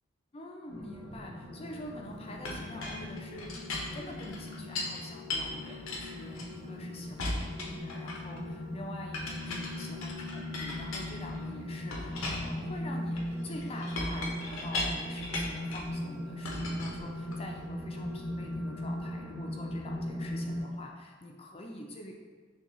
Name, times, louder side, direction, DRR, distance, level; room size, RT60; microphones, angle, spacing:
voice 1, 0.3-22.1, left 1 dB, 30° left, 1 dB, 0.4 m, -46 dB
sound 1, 0.7-20.6, left 1 dB, 50° right, 1.2 m, -39 dB
Chink clink, 2.4-5.0 5.3-6.8 7.2-8.4 9.1-11.4 11.9-15.9 16.4-17.6, left 2 dB, 85° left, 0.7 m, -38 dB
5.9 x 2.3 x 3.0 m, 1.5 s
head